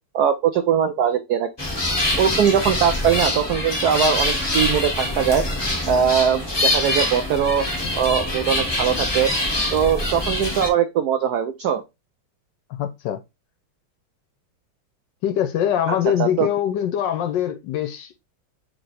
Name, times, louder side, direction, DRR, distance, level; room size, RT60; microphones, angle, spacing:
voice 1, 0.1-1.5 2.2-5.4 5.9-7.6 8.0-9.3 9.7-11.8 15.9-16.5, right 8 dB, 85° right, 0.8 m, -21 dB
sound 1, 1.6-10.7, left 1 dB, 30° left, 0.4 m, -24 dB
voice 2, 12.8-13.2 15.2-18.2, left 10 dB, 70° left, 1.2 m, -23 dB
3.4 x 3.4 x 3.9 m
omnidirectional pair, 2.3 m